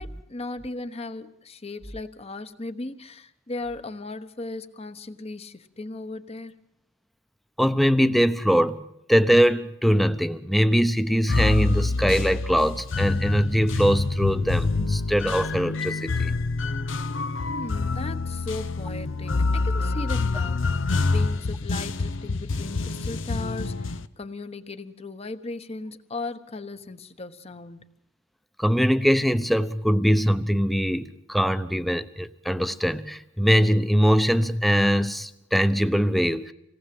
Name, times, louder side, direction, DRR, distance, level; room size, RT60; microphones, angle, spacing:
voice 1, 0.0-6.5 17.5-20.7 21.0-27.9, left 2 dB, 30° left, 1.2 m, -37 dB
voice 2, 7.6-8.8 9.1-16.3 28.6-36.5, equal, ahead, 0.8 m, -22 dB
sound 1, 11.3-24.1, left 3 dB, 80° left, 0.8 m, -26 dB
26.5 x 18.5 x 7.8 m
head